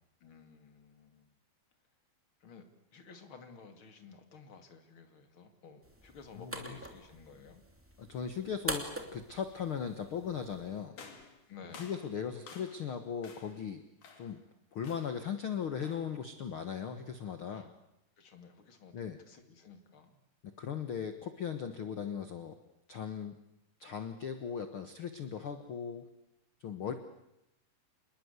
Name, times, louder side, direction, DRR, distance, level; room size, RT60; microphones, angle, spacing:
voice 1, 0.2-1.4 2.4-2.6 2.9-7.6 11.5-11.9 17.5-17.7 18.2-20.2 26.8-26.9, left 5 dB, 40° left, 7 dB, 2.6 m, -54 dB
sound 1, 5.8-10.8, right 1 dB, 5° right, 2.0 m, -44 dB
voice 2, 8.0-11.0 11.8-13.8 14.2-14.4 14.7-17.6 18.9-19.2 20.4-22.5 22.9-23.4 23.8-26.0 26.6-26.9, left 7 dB, 85° left, 9 dB, 1.1 m, -38 dB
sound 2, 10.9-12.9 13.2-13.6 14.0-14.4 14.8-15.3 15.8-16.2, left 5 dB, 55° left, 4.0 m, -53 dB
27.0 x 21.0 x 8.2 m, 0.86 s
omnidirectional pair, 4.5 m